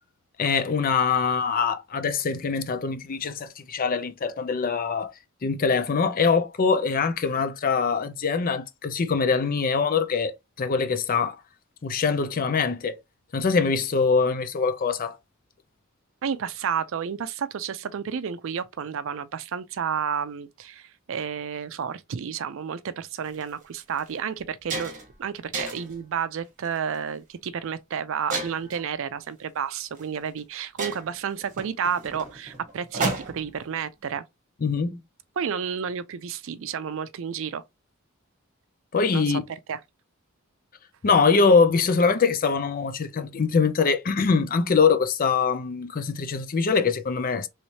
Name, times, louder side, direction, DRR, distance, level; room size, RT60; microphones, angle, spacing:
voice 1, 0.4-5.1 5.4-11.4 11.8-13.0 13.3-15.2 34.6-35.0 38.9-39.4 41.0-47.5, left 5 dB, 40° left, 0.5 m, -23 dB
voice 2, 16.2-24.9 25.2-34.2 35.4-37.6 39.1-39.8, right 7 dB, 65° right, 0.4 m, -31 dB
sound 1, 23.3-23.4 24.0-24.1 24.4-25.1 25.5-26.0 26.7-27.0 28.3-28.8 30.0-30.1 30.4-30.5 30.8-33.6, right 3 dB, 40° right, 1.0 m, -32 dB
3.1 x 3.1 x 2.8 m
head